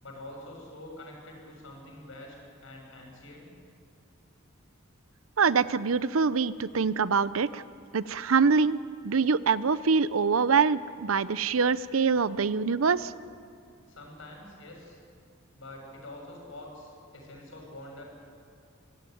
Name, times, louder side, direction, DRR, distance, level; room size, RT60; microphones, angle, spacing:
voice 1, 0.0-2.3 2.6-3.5 13.9-15.0 15.5-18.0, left 1 dB, 70° left, 1 dB, 6.7 m, -45 dB
voice 2, 5.4-7.6 7.9-13.1, right 5 dB, 85° right, 16 dB, 0.7 m, -25 dB
24.5 x 16.0 x 9.3 m, 2.4 s
head